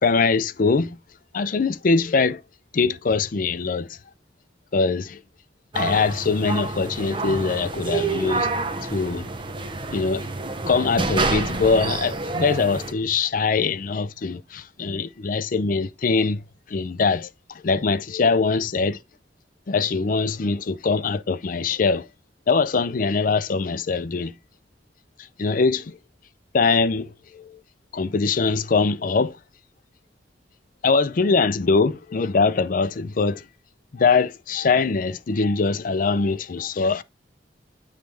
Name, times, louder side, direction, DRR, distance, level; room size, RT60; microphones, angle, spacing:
voice 1, 0.0-1.0 1.3-2.4 2.7-3.9 4.7-5.2 5.7-8.5 8.9-9.3 9.9-10.2 10.7-16.4 16.7-17.3 17.6-19.0 19.7-22.1 22.5-24.3 25.4-25.8 26.5-27.6 27.9-29.4 30.8-33.4 33.9-37.0, left 4 dB, 50° left, 0.4 m, -22 dB
sound 1, 5.7-12.9, right 3 dB, 30° right, 0.6 m, -28 dB
9.0 x 3.2 x 3.4 m
head